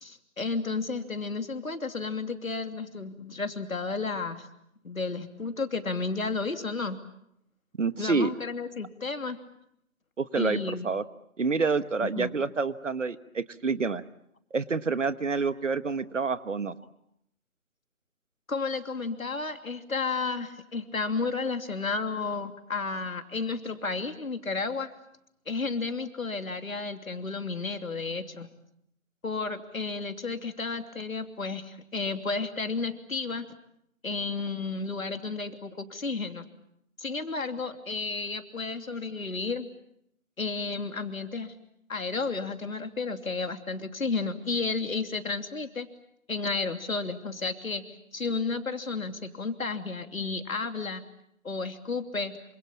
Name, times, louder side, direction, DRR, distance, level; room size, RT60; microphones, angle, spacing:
voice 1, 0.0-4.5 4.8-7.0 8.0-9.4 10.4-10.9 12.0-12.3 18.5-24.9 25.5-28.5 29.2-33.5 34.0-36.4 37.0-39.7 40.4-41.5 41.9-45.9 46.3-47.8 48.1-51.0 51.4-52.4, left 4 dB, 80° left, 7 dB, 3.0 m, -32 dB
voice 2, 7.8-8.3 10.2-11.0 11.4-14.0 14.5-16.7, right 4 dB, 65° right, 14 dB, 1.4 m, -28 dB
27.5 x 26.5 x 7.3 m, 0.76 s
figure-of-eight pair, 165°, 41 cm